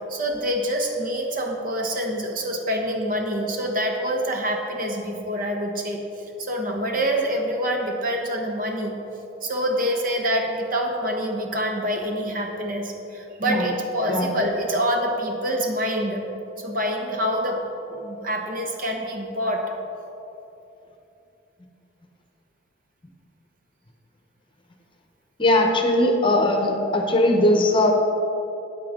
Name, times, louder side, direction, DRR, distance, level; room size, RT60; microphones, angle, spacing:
voice 1, 0.1-6.0 6.4-8.9 9.4-16.2 16.6-17.6 17.9-19.6, equal, 50° right, 2 dB, 1.2 m, -26 dB
voice 2, 25.4-27.9, left 1 dB, 25° left, 2 dB, 0.9 m, -19 dB
13.0 x 8.9 x 3.8 m, 2.9 s
head